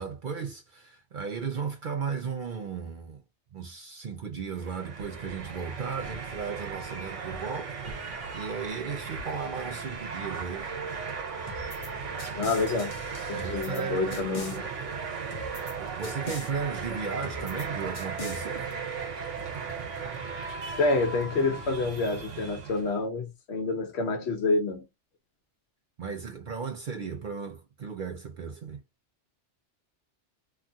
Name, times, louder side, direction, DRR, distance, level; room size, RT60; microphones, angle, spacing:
voice 1, 0.0-3.2 3.5-10.8 13.3-14.7 15.8-18.7 26.0-28.8, right 6 dB, 55° right, 0.6 m, -35 dB
sound 1, 4.5-23.0, right 5 dB, 85° right, 1.2 m, -37 dB
sound 2, 11.5-11.9 12.2-13.8 14.1-14.6 15.3-15.7 16.0-16.5 17.2-17.7 17.9-18.4, left 3 dB, 45° left, 0.5 m, -42 dB
voice 2, 12.3-12.9 13.3-14.6 20.8-24.9, left 3 dB, 65° left, 1.0 m, -28 dB
2.9 x 2.3 x 2.6 m
omnidirectional pair, 1.2 m